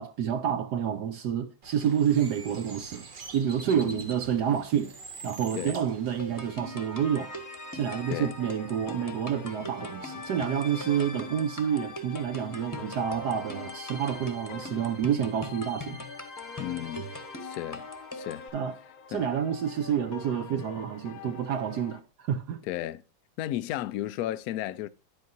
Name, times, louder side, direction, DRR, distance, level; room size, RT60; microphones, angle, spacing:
voice 1, 0.0-3.0 3.3-4.9 5.2-7.3 7.7-16.0 18.5-18.7 19.1-22.6, right 8 dB, 65° right, 1.1 m, -29 dB
Bird, 1.6-6.6, right 4 dB, 40° right, 0.7 m, -45 dB
voice 2, 3.7-4.1 5.5-5.8 8.1-8.3 16.6-17.1 17.4-17.9 18.1-18.5 19.1-19.2 22.6-23.0 23.4-24.9, left 13 dB, 80° left, 0.8 m, -34 dB
sound 1, 6.2-18.5, left 1 dB, 15° left, 0.9 m, -41 dB
sound 2, 7.0-22.0, left 7 dB, 55° left, 1.2 m, -46 dB
10.5 x 8.3 x 2.6 m
omnidirectional pair, 2.2 m